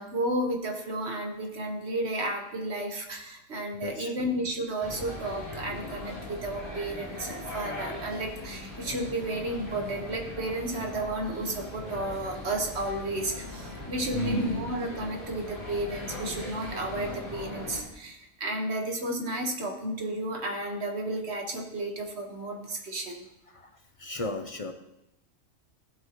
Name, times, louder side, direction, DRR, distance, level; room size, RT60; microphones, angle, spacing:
voice 1, 0.0-23.2, right 1 dB, 55° right, 2 dB, 1.6 m, -32 dB
voice 2, 3.8-4.1 14.1-14.7 23.5-23.6 24.0-24.7, left 2 dB, 45° left, 7 dB, 0.4 m, -33 dB
sound 1, 4.8-17.8, left 1 dB, 25° right, 3.3 m, -40 dB
15.5 x 7.9 x 3.0 m, 0.91 s
omnidirectional pair, 1.4 m